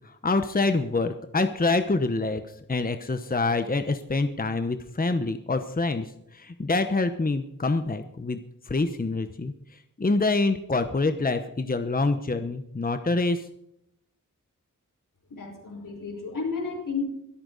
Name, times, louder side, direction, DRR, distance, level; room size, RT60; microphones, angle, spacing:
voice 1, 0.2-2.4 2.7-6.1 6.3-8.4 8.7-9.5 10.0-13.4, left 3 dB, 25° left, 8 dB, 1.0 m, -26 dB
voice 2, 15.3-17.0, left 5 dB, 85° left, 2 dB, 5.2 m, -32 dB
23.0 x 8.8 x 4.1 m, 0.78 s
wide cardioid pair, 85°, 32 cm